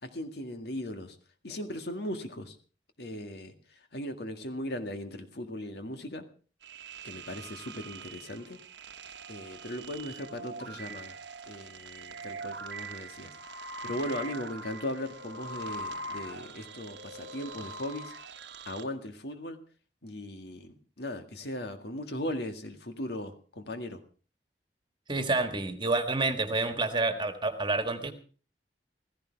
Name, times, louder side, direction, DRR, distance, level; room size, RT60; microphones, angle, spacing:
voice 1, 0.0-1.2 1.4-2.6 3.0-6.2 7.0-8.6 9.3-11.2 11.5-18.1 18.7-19.6 20.0-24.0, left 1 dB, 65° left, 7 dB, 1.9 m, -38 dB
sound 1, 6.6-18.8, right 2 dB, 85° right, 1.2 m, -42 dB
voice 2, 25.1-28.1, right 3 dB, 25° right, 8 dB, 1.7 m, -28 dB
15.5 x 15.5 x 4.6 m, 0.38 s
head